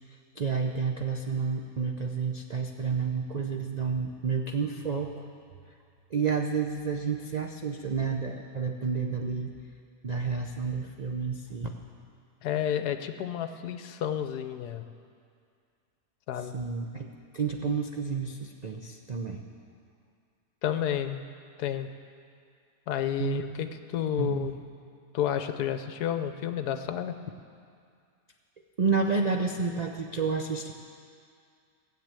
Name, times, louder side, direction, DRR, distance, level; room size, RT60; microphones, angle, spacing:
voice 1, 0.4-5.3 6.1-9.5 10.0-11.8 16.5-17.1 17.3-19.4 23.2-23.4 24.2-24.5 28.8-30.7, right 5 dB, 75° right, 3 dB, 0.3 m, -30 dB
voice 2, 12.4-14.8 16.3-16.5 20.6-21.2 21.6-21.9 22.9-24.5 25.1-27.1, left 10 dB, 75° left, 9 dB, 1.2 m, -30 dB
16.5 x 7.8 x 8.9 m, 2.3 s
omnidirectional pair, 1.8 m